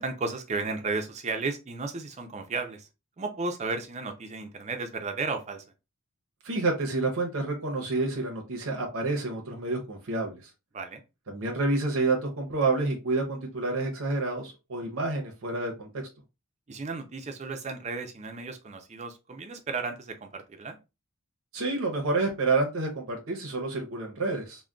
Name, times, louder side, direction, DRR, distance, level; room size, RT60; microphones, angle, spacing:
voice 1, 0.0-2.9 3.2-5.6 10.7-11.0 16.7-20.8, right 3 dB, 30° right, 0.4 m, -34 dB
voice 2, 6.4-10.4 11.3-15.9 21.5-24.6, right 3 dB, 70° right, 0.7 m, -29 dB
3.6 x 2.1 x 2.3 m
head